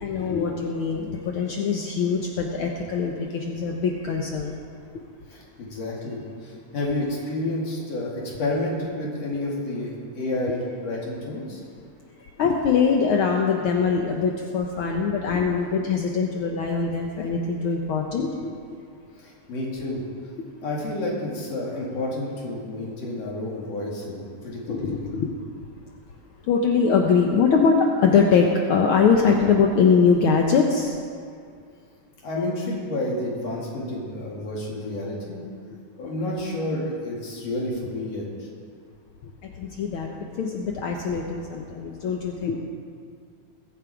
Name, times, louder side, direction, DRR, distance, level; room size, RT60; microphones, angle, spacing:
voice 1, 0.0-4.6 12.4-18.5 24.7-25.3 26.5-30.9 39.6-40.1 40.4-42.6, left 5 dB, 75° left, 1 dB, 1.2 m, -22 dB
voice 2, 5.3-11.6 19.2-20.0 20.6-25.0 32.2-35.4 36.0-38.5, left 1 dB, 60° left, -4 dB, 3.4 m, -30 dB
22.0 x 7.4 x 4.8 m, 2.2 s
omnidirectional pair, 3.4 m